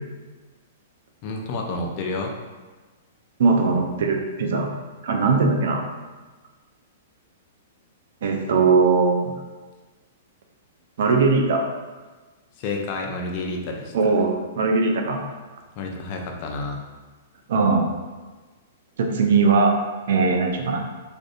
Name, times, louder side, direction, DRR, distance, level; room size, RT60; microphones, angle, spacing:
voice 1, 1.2-2.3 12.6-13.9 15.8-16.8, left 3 dB, 45° left, 2 dB, 0.4 m, -29 dB
voice 2, 3.4-4.7 5.0-5.8 8.2-9.3 11.0-11.6 13.9-15.2 17.5-17.9 19.0-19.7 20.1-20.8, right 4 dB, 65° right, 2 dB, 0.4 m, -20 dB
2.5 x 2.5 x 2.3 m, 1.3 s
hypercardioid pair, 120°, 0 cm